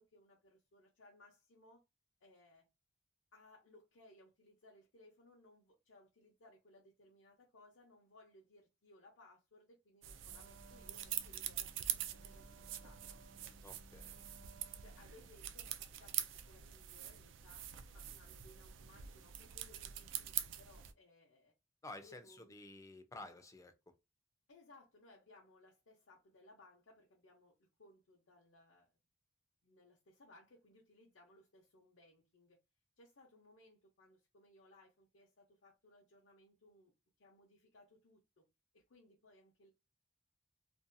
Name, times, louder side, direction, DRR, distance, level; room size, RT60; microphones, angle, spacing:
voice 1, 0.0-1.8 2.2-2.7 3.3-13.2 14.8-17.7 17.9-21.5 21.9-22.5 24.5-28.9 29.6-32.6 33.0-36.9 37.2-38.4 38.7-39.7, left 2 dB, 80° left, 0.7 m, -64 dB
sound 1, 10.0-20.9, right 11 dB, 75° right, 0.3 m, -44 dB
Wind instrument woodwind instrument, 10.2-15.4, right 3 dB, 50° right, 0.9 m, -63 dB
voice 2, 13.6-14.2 21.8-24.0, left 2 dB, 15° left, 0.4 m, -52 dB
2.6 x 2.2 x 2.5 m
head